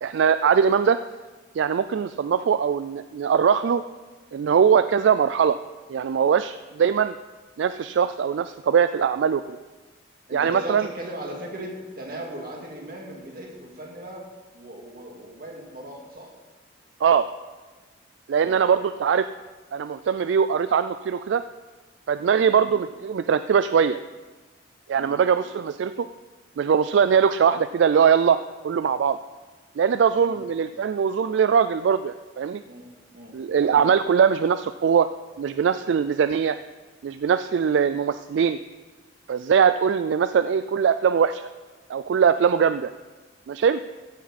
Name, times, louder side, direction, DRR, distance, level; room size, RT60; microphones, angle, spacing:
voice 1, 0.0-1.0 1.6-3.8 4.3-5.6 5.9-7.1 7.6-9.6 10.3-10.9 17.0-17.3 18.3-19.3 19.7-21.4 22.1-24.0 24.9-26.1 26.6-28.4 28.6-29.2 29.8-32.6 33.3-35.1 35.4-36.6 37.0-38.6 39.3-41.4 41.9-42.9 43.5-43.8, right 7 dB, 70° right, 12 dB, 0.3 m, -21 dB
voice 2, 10.3-14.2 14.5-16.3 18.4-18.6 22.4-22.7 24.9-25.2 30.2-30.4 32.6-32.9 33.1-33.8, right 1 dB, 50° right, -1 dB, 2.3 m, -38 dB
14.5 x 9.2 x 4.1 m, 1.3 s
head